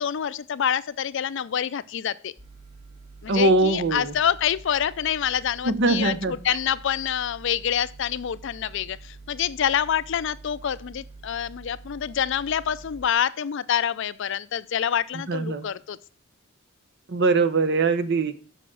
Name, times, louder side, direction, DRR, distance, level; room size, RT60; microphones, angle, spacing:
voice 1, 0.0-2.3 3.2-16.0, left 9 dB, 65° left, 0.4 m, -27 dB
sound 1, 2.4-13.0, right 3 dB, 40° right, 1.7 m, -46 dB
voice 2, 3.3-4.1 5.6-6.3 15.3-15.7 17.1-18.4, right 3 dB, 60° right, 0.8 m, -22 dB
6.9 x 6.2 x 6.1 m
head